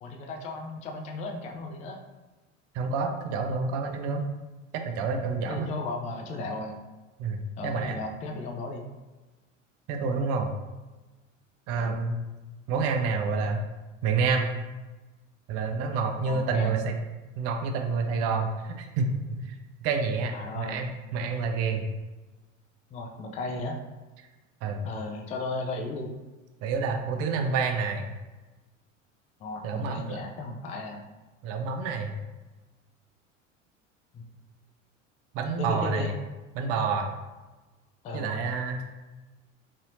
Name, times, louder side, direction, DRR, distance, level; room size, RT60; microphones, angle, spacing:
voice 1, 0.0-2.0 5.4-6.8 7.6-8.9 11.8-12.0 16.2-16.7 20.3-20.8 22.9-23.8 24.8-26.1 29.4-31.0 34.1-34.2 35.6-36.1 38.0-38.3, left 2 dB, 20° left, 2 dB, 0.4 m, -35 dB
voice 2, 2.7-4.3 4.7-5.7 7.2-8.0 9.9-10.5 11.7-12.2 12.7-13.6 14.0-14.5 15.5-17.0 17.4-21.8 24.6-24.9 26.6-28.1 29.6-30.2 31.4-32.2 35.3-36.1 36.5-37.1 38.1-39.0, right 4 dB, 40° right, 4 dB, 0.5 m, -28 dB
4.1 x 2.7 x 2.6 m, 1.2 s
figure-of-eight pair, 75°, 38 cm